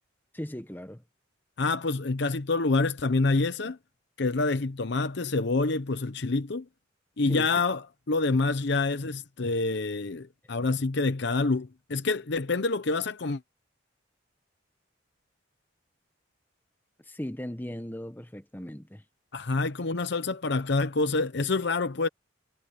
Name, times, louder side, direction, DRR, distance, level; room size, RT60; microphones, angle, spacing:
voice 1, 0.3-1.0 7.3-7.5 17.0-19.0, equal, 10° left, 1.2 m, -38 dB
voice 2, 1.6-3.8 4.2-6.6 7.2-7.8 8.1-13.4 19.3-22.1, left 3 dB, 65° left, 0.8 m, -27 dB
head